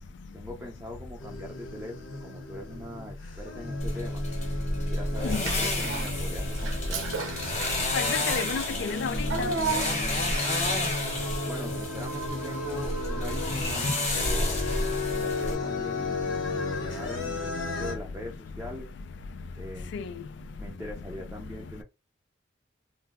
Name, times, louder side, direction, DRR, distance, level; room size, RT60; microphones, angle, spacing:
voice 1, 0.3-2.0 2.2-4.2 4.7-7.1 11.5-14.6 15.1-18.9 19.6-20.1 20.6-21.8, left 1 dB, 10° right, 0.4 m, -42 dB
sound 1, 1.2-18.0, left 2 dB, 85° left, 0.7 m, -34 dB
sound 2, 3.8-15.6, left 2 dB, 35° left, 0.9 m, -31 dB
Child speech kid speaking / Bathtub (filling or washing), 5.2-6.2 6.5-10.8, right 5 dB, 90° right, 0.6 m, -35 dB
voice 2, 7.9-9.5 19.9-20.1, left 6 dB, 65° left, 0.3 m, -31 dB
2.2 x 2.0 x 3.4 m
head